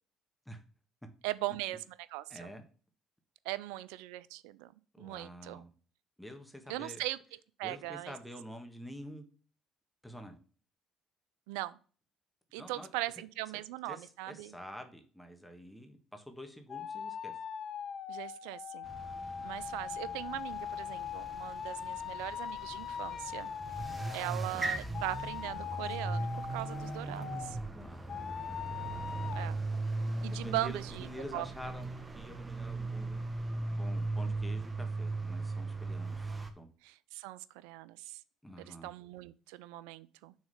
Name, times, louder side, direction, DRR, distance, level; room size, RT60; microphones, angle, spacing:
voice 1, 1.2-2.5 3.4-4.7 5.0-5.6 6.7-7.2 7.6-8.2 11.5-11.8 12.5-14.6 18.1-18.9 19.4-23.5 24.1-27.6 29.3-29.6 30.2-31.5 36.8-38.2 38.6-40.3, right 17 dB, 85° right, 0.3 m, -40 dB
voice 2, 2.3-2.6 4.9-5.7 6.2-7.0 7.6-9.3 10.0-10.3 12.6-12.9 13.9-17.3 27.7-28.1 30.3-33.2 33.7-36.7 38.4-38.9, equal, 5° left, 1.5 m, -47 dB
sound 1, 16.7-24.3 24.9-27.6 28.1-29.5, left 8 dB, 55° left, 0.6 m, -41 dB
sound 2, 18.8-36.5, right 2 dB, 20° right, 1.2 m, -38 dB
6.3 x 3.6 x 5.7 m
supercardioid pair, 65°, 0 cm